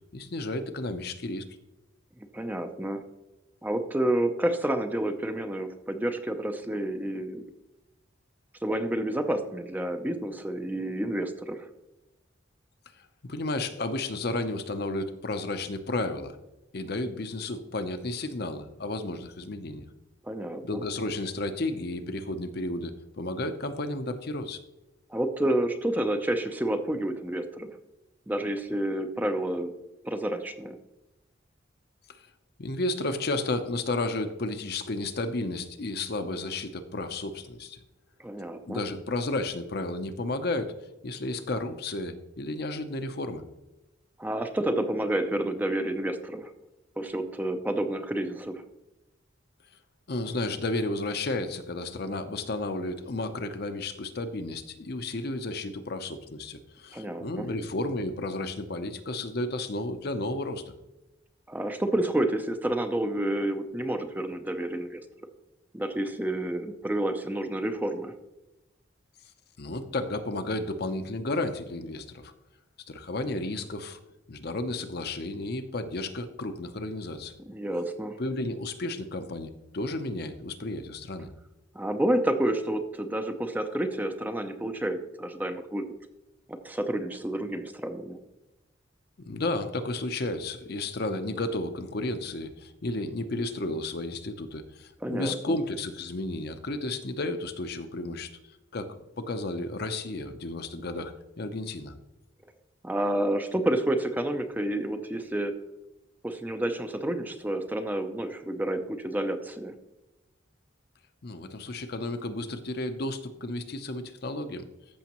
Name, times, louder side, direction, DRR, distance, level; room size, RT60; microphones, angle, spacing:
voice 1, 0.1-1.4 13.2-16.4 16.7-19.9 20.6-24.6 32.6-37.8 38.7-40.7 41.0-43.4 50.1-60.6 69.6-72.3 72.9-74.0 74.3-77.4 78.2-81.3 89.2-98.3 98.7-101.9 111.2-114.7, left 2 dB, 55° left, 8 dB, 0.7 m, -32 dB
voice 2, 2.2-3.0 3.6-7.4 8.6-11.7 20.2-20.8 25.1-27.7 28.3-29.7 30.0-30.8 38.2-38.8 44.2-46.5 47.0-48.6 56.9-57.5 61.5-65.0 65.7-68.1 77.5-78.2 81.7-85.8 86.5-88.2 95.0-95.5 102.8-105.5 106.2-109.7, right 1 dB, 10° right, 7 dB, 0.5 m, -29 dB
14.0 x 6.3 x 3.0 m, 0.97 s
head